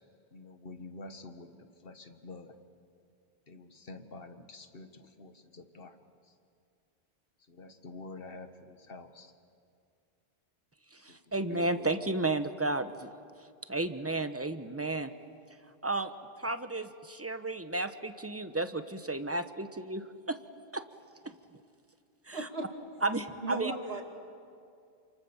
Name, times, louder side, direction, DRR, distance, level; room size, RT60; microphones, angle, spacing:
voice 1, 0.3-1.5 1.8-2.6 3.5-6.0 7.5-9.3 11.1-11.2 11.5-12.1, left 3 dB, 65° left, 8 dB, 1.7 m, -47 dB
voice 2, 10.9-13.1 13.7-15.1 15.8-16.1 16.4-20.4 20.7-20.8 21.2-21.3 22.3-22.5 23.0-23.7, right 2 dB, 15° right, 10 dB, 1.0 m, -33 dB
voice 3, 22.3-22.7 23.4-24.0, right 2 dB, 75° right, 3 dB, 3.0 m, -35 dB
29.0 x 27.5 x 7.2 m, 2.4 s
omnidirectional pair, 1.0 m